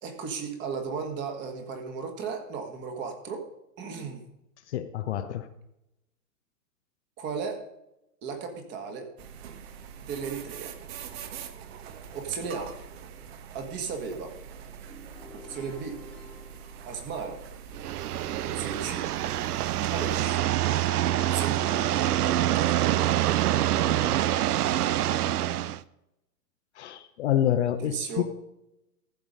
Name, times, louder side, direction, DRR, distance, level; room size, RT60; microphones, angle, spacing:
voice 1, 0.0-3.5 3.8-4.2 7.2-7.6 8.2-9.1 10.0-10.7 12.1-12.7 13.5-14.3 15.3-16.0 16.8-17.4 18.4-19.1 19.8-20.5 21.2-21.8 22.5-23.1 27.8-28.2, right 5 dB, 20° right, 1.6 m, -35 dB
voice 2, 4.7-5.5 26.8-28.2, left 11 dB, 45° left, 0.7 m, -27 dB
sound 1, 9.2-20.2, right 7 dB, 40° right, 1.2 m, -44 dB
sound 2, 14.8-17.7, left 2 dB, 5° left, 1.6 m, -50 dB
sound 3, 17.7-25.8, right 13 dB, 65° right, 0.6 m, -26 dB
14.5 x 7.0 x 5.2 m
hypercardioid pair, 145°, 49 cm